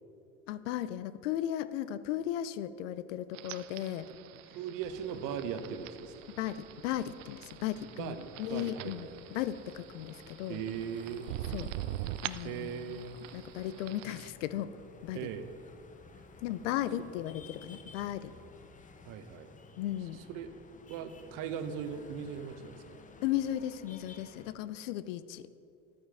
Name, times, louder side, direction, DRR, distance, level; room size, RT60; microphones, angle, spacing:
voice 1, 0.5-4.1 6.3-10.6 11.5-11.7 12.2-13.0 13.3-14.7 15.0-15.3 16.4-18.3 19.8-20.2 23.2-25.5, left 12 dB, 75° left, 15 dB, 0.6 m, -36 dB
sound 1, 3.3-14.3, right 14 dB, 75° right, 0.5 m, -44 dB
voice 2, 4.5-6.1 8.0-9.2 10.5-11.3 12.4-13.2 15.1-15.5 19.0-19.5 20.3-20.5 20.9-23.0, right 8 dB, 55° right, 9 dB, 0.9 m, -39 dB
sound 2, 4.8-24.5, left 4 dB, 20° left, 0.8 m, -55 dB
12.5 x 8.9 x 3.5 m, 2.7 s
hypercardioid pair, 85°, 38 cm